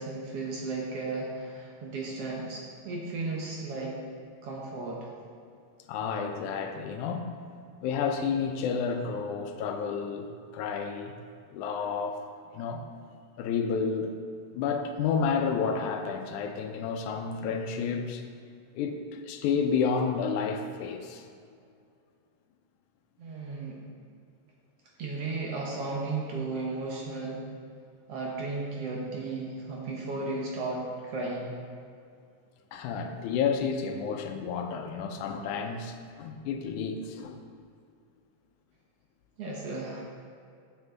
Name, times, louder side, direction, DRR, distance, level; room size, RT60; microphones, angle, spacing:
voice 1, 0.0-4.0 4.4-5.1 23.2-23.8 25.0-27.4 28.1-31.6 39.4-40.0, right 3 dB, 65° right, -2 dB, 1.7 m, -34 dB
voice 2, 5.9-7.3 7.8-11.1 11.5-12.2 12.5-12.8 13.4-14.1 14.5-18.2 18.8-21.2 32.7-37.4, left 6 dB, 80° left, 6 dB, 2.1 m, -30 dB
9.4 x 7.4 x 3.8 m, 2.3 s
omnidirectional pair, 3.5 m